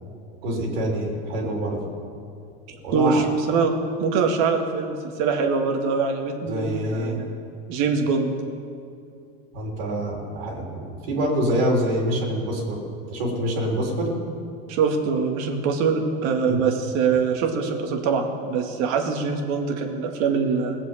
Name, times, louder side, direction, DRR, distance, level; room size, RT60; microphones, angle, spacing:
voice 1, 0.4-1.9 2.8-3.3 6.4-7.2 9.5-12.8 13.1-14.2 16.4-16.6, right 1 dB, 85° right, -1 dB, 3.7 m, -26 dB
voice 2, 2.9-3.7 4.0-7.3 7.7-8.3 14.7-20.8, right 5 dB, 65° right, 4 dB, 2.1 m, -23 dB
18.5 x 7.6 x 7.4 m, 2.5 s
supercardioid pair, 110°, 29 cm